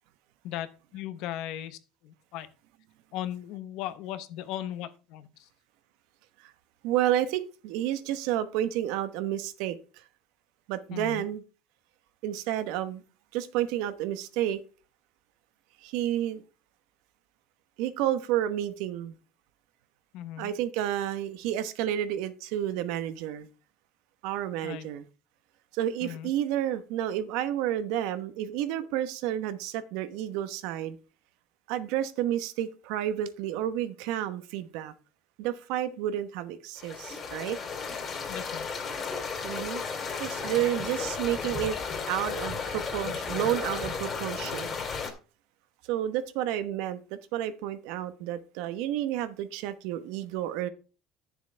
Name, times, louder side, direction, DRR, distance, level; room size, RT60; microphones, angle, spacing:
voice 1, 0.4-2.5 3.1-5.5 10.9-11.2 20.1-20.5 24.6-24.9 26.0-26.3 38.3-38.7, left 12 dB, 70° left, 13 dB, 1.0 m, -37 dB
voice 2, 6.8-10.0 10.7-11.4 12.2-13.0 13.3-14.6 15.8-16.4 17.8-19.2 20.4-23.5 24.2-25.0 25.7-31.0 31.7-34.9 35.4-37.6 39.4-39.8 40.2-41.8 42.1-44.7 45.8-50.7, right 12 dB, 80° right, 12 dB, 1.1 m, -30 dB
sound 1, 36.8-45.1, left 5 dB, 35° left, 2.6 m, -34 dB
10.0 x 7.0 x 4.4 m, 0.35 s
cardioid pair, 125°, 0 cm